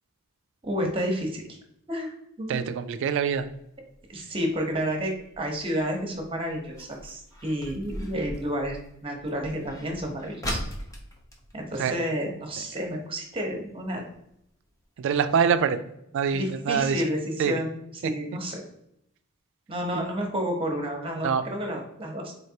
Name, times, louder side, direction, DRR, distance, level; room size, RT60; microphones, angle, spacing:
voice 1, 0.6-1.4 1.9-2.6 4.1-10.6 11.5-14.0 16.3-18.6 19.7-22.3, equal, 25° right, 2 dB, 0.8 m, -30 dB
voice 2, 2.5-3.4 11.8-11.9 15.0-15.8 16.1-17.0 17.4-17.6 21.2-21.4, right 7 dB, 60° right, 9 dB, 0.3 m, -24 dB
sound 1, 3.3-12.6 12.9-13.0 13.2-13.6 14.1-14.2 14.7-14.8 15.1-15.2 15.6-15.7, equal, 15° left, 0.6 m, -39 dB
4.2 x 3.2 x 2.7 m, 0.76 s
head